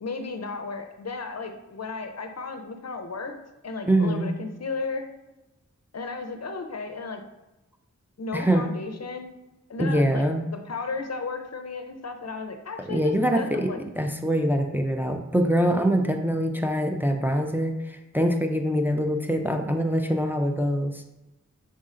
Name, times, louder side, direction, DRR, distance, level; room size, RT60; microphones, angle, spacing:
voice 1, 0.0-3.4 3.6-5.0 5.9-7.2 8.2-9.3 9.7-13.8, left 4 dB, 60° left, 6 dB, 0.5 m, -34 dB
voice 2, 3.9-4.3 8.3-8.6 9.8-10.5 12.9-13.7 14.0-21.0, equal, 5° right, 4 dB, 0.5 m, -24 dB
5.3 x 3.7 x 2.5 m, 0.97 s
wide cardioid pair, 45°, 31 cm